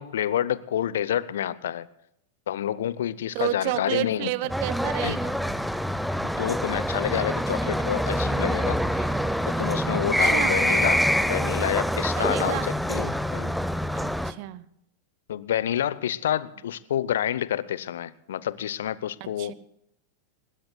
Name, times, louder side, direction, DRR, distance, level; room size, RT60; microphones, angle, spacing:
voice 1, 0.0-1.9 2.5-4.3 5.0-5.2 6.2-9.2 9.5-12.6 12.9-13.5 15.3-19.5, left 11 dB, 60° left, 19 dB, 0.8 m, -28 dB
voice 2, 3.3-5.4 10.2-10.7 12.2-12.7 13.9-14.7 19.2-19.5, right 18 dB, 45° right, 18 dB, 0.9 m, -31 dB
sound 1, 4.5-14.3, equal, ahead, 0.8 m, -25 dB
24.5 x 21.0 x 2.3 m, 0.76 s
figure-of-eight pair, 90°, 0 cm